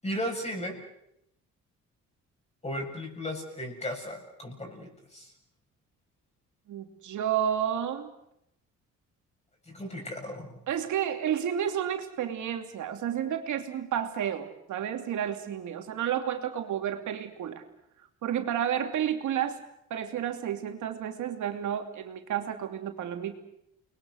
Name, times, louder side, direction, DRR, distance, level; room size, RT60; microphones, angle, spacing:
voice 1, 0.0-0.8 2.6-5.3 9.7-10.6, left 1 dB, 20° left, 1 dB, 7.8 m, -35 dB
voice 2, 6.7-8.1 10.7-17.6 18.2-19.6 19.9-23.4, right 9 dB, 75° right, 5 dB, 3.0 m, -31 dB
29.5 x 21.5 x 6.6 m, 0.80 s
cardioid pair, 90°, 30 cm